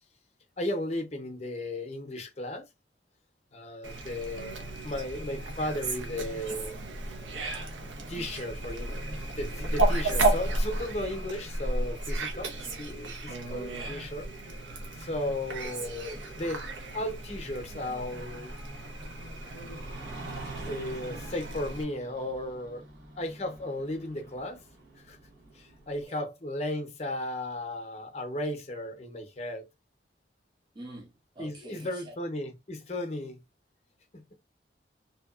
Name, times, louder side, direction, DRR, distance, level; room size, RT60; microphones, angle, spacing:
voice 1, 0.6-2.7 3.5-6.8 8.1-12.5 12.8-14.3 14.9-18.5 20.6-22.8 23.2-24.6 25.1-25.2 25.5-29.7 31.4-33.4 34.1-34.2, left 1 dB, 35° left, 0.6 m, -35 dB
Fowl, 3.8-21.8, right 2 dB, 90° right, 0.7 m, -33 dB
voice 2, 7.9-8.5 26.1-26.2 30.7-32.2, right 1 dB, 25° right, 0.5 m, -47 dB
sound 1, 16.1-26.0, right 3 dB, 70° right, 1.1 m, -47 dB
2.7 x 2.2 x 2.3 m
head